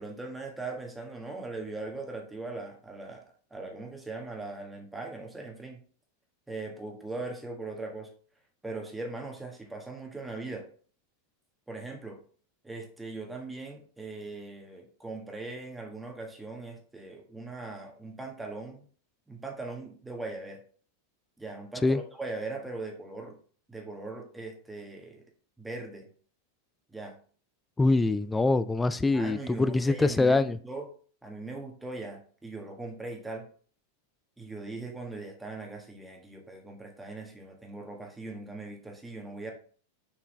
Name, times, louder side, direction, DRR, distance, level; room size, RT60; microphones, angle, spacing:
voice 1, 0.0-3.2 3.5-5.8 6.5-8.1 8.6-10.7 11.7-12.2 12.6-18.9 19.3-20.6 21.4-23.4 23.7-25.2 25.6-26.1 26.9-27.2 29.1-30.9 31.2-33.5 34.4-39.5, right 3 dB, 5° right, 1 dB, 1.6 m, -40 dB
voice 2, 27.8-30.6, left 3 dB, 10° left, 13 dB, 0.3 m, -24 dB
7.0 x 4.6 x 3.3 m, 0.43 s
figure-of-eight pair, 90°, 0 cm